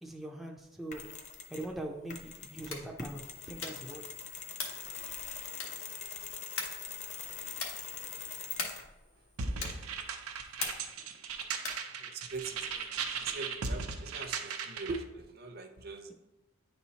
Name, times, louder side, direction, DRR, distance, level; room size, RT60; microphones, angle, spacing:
voice 1, 0.0-1.0 1.5-4.0, right 1 dB, ahead, 0 dB, 0.4 m, -41 dB
Mechanisms, 0.9-1.7 2.1-9.0, left 6 dB, 35° left, 0.7 m, -43 dB
sound 1, 2.6-3.0 3.5-3.9 4.5-4.9 5.5-5.9 6.6-6.9 7.5-7.9 8.5-8.9 9.6-9.9 10.6-11.0 11.6-11.9, left 4 dB, 80° left, 1.2 m, -39 dB
sound 2, 9.4-15.0, right 5 dB, 85° right, 0.6 m, -37 dB
voice 2, 12.0-16.1, right 4 dB, 45° right, 6 dB, 0.6 m, -42 dB
9.7 x 4.3 x 2.8 m, 0.99 s
head